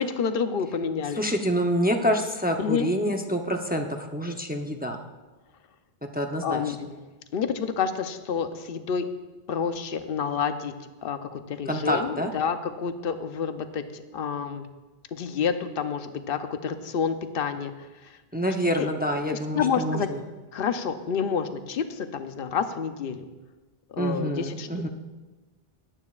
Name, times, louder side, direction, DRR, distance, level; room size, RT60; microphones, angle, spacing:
voice 1, 0.0-1.2 2.6-2.9 6.4-7.0 7.3-9.1 9.5-10.7 11.0-14.7 15.1-18.2 18.8-18.9 19.3-20.1 20.5-23.2 23.9-24.9, left 6 dB, 65° left, 9 dB, 0.9 m, -29 dB
voice 2, 1.2-5.0 6.1-6.7 11.7-12.3 18.3-20.2 24.0-24.9, equal, 10° right, 3 dB, 0.6 m, -27 dB
17.5 x 11.5 x 2.4 m, 1.2 s
omnidirectional pair, 1.0 m